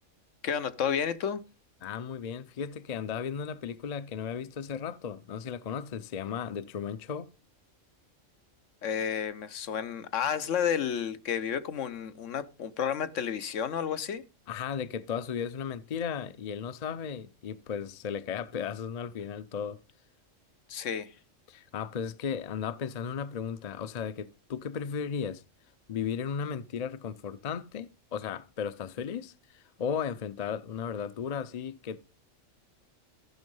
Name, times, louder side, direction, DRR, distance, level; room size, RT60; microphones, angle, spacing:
voice 1, 0.4-1.4 8.8-14.2 20.7-21.1, left 8 dB, 75° left, 1.2 m, -31 dB
voice 2, 1.8-7.3 14.5-19.8 21.5-25.4 25.9-32.0, left 7 dB, 45° left, 0.6 m, -35 dB
14.5 x 6.2 x 5.4 m
omnidirectional pair, 1.3 m